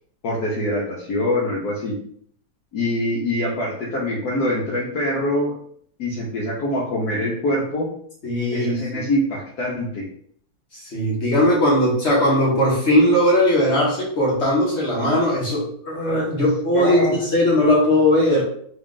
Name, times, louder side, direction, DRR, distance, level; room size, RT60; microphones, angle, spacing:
voice 1, 0.2-2.0 2.7-5.5 6.0-7.9 8.5-10.1 16.7-17.2, left 1 dB, 65° left, -5 dB, 1.2 m, -24 dB
voice 2, 8.2-9.0 10.8-18.4, left 1 dB, 45° left, -5 dB, 1.0 m, -19 dB
3.6 x 2.3 x 3.6 m, 0.62 s
omnidirectional pair, 2.0 m